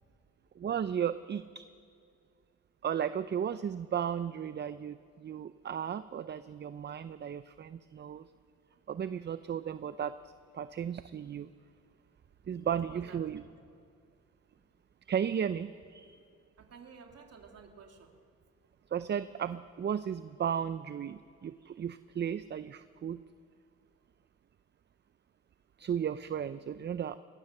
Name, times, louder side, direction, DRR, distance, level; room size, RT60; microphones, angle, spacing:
voice 1, 0.6-1.6 2.8-8.3 8.9-10.1 10.5-11.5 12.5-13.4 15.1-16.2 18.9-23.2 25.8-27.2, right 8 dB, 35° right, 14 dB, 0.5 m, -35 dB
voice 2, 12.8-13.5 16.6-18.1, right 5 dB, 55° right, 2 dB, 2.7 m, -52 dB
22.5 x 19.5 x 6.7 m, 2.2 s
cardioid pair, 90°, 30 cm